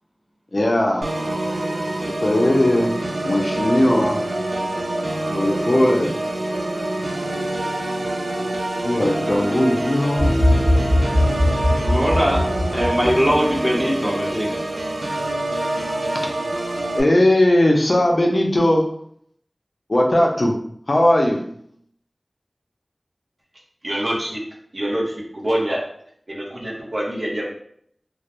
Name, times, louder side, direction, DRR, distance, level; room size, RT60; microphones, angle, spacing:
voice 1, 0.5-1.1 2.2-4.2 5.3-6.1 8.8-10.3 17.0-18.9 19.9-20.6 20.9-21.5, left 1 dB, 55° left, 1 dB, 0.4 m, -18 dB
Organ, 1.0-17.0, right 1 dB, 90° right, 0.3 m, -26 dB
sound 1, 10.2-13.6, left 1 dB, 25° left, 0.7 m, -20 dB
voice 2, 11.8-12.4 12.7-14.6, equal, 10° right, -4 dB, 0.9 m, -21 dB
voice 3, 23.8-24.4 24.7-25.8 26.3-27.5, right 1 dB, 60° right, -4 dB, 0.7 m, -25 dB
2.2 x 2.0 x 2.8 m, 0.65 s
wide cardioid pair, 50°, 0 cm